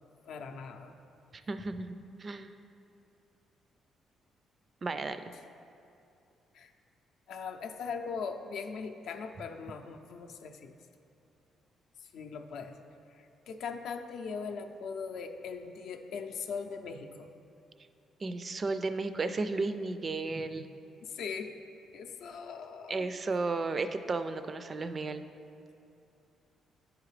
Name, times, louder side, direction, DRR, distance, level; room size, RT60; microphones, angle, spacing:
voice 1, 0.2-1.0 6.5-6.7 7.3-10.7 12.1-12.8 13.1-17.3 21.0-21.6 21.9-23.1, left 5 dB, 75° left, 5 dB, 0.5 m, -40 dB
voice 2, 1.3-2.5 4.8-5.2 18.2-20.7 22.9-25.2, right 3 dB, 35° right, 10 dB, 0.3 m, -34 dB
9.8 x 4.9 x 3.2 m, 2.7 s
cardioid pair, 90°, 0 cm